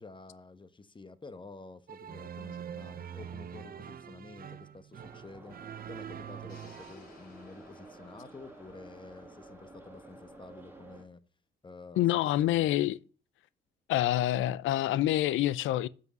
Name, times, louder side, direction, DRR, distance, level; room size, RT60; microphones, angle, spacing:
voice 1, 0.0-5.6 5.9-11.2 11.6-12.0 12.4-12.7, left 3 dB, 25° left, 1.0 m, -50 dB
sound 1, 1.9-6.9, right 8 dB, 50° right, 0.6 m, -44 dB
Subway metro underground, 5.0-11.0, right 2 dB, 10° right, 2.4 m, -52 dB
sound 2, 6.5-10.5, left 4 dB, 50° left, 4.5 m, -60 dB
voice 2, 12.0-13.0 13.9-15.9, left 14 dB, 80° left, 0.5 m, -27 dB
8.0 x 5.5 x 7.4 m
cardioid pair, 90°, 20 cm